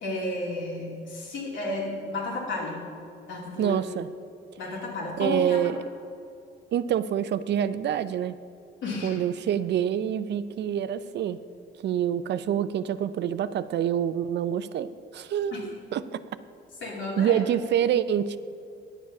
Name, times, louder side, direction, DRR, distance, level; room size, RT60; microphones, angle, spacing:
voice 1, 0.0-2.8 3.3-3.8 4.6-5.6 8.8-9.2 15.5-15.6 16.8-17.4, left 2 dB, 70° left, -2 dB, 2.5 m, -32 dB
voice 2, 3.6-4.1 5.2-5.8 6.7-8.4 9.0-11.4 11.8-16.2 17.2-18.4, right 9 dB, 60° right, 14 dB, 0.5 m, -26 dB
9.9 x 7.4 x 5.9 m, 2.3 s
cardioid pair, 90°, 20 cm